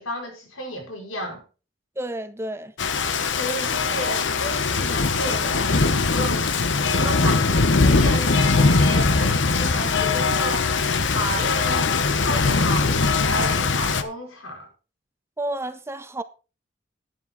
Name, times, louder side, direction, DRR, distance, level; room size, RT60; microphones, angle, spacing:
voice 1, 0.0-1.4 3.3-5.7 6.1-6.5 6.9-10.7 11.1-11.9 12.1-14.7, equal, 90° left, 5.1 m, -32 dB
voice 2, 2.0-2.7 15.4-16.2, right 1 dB, 15° right, 0.7 m, -30 dB
Rain, 2.8-14.0, left 4 dB, 65° left, 1.0 m, -21 dB
11.5 x 9.9 x 4.0 m
head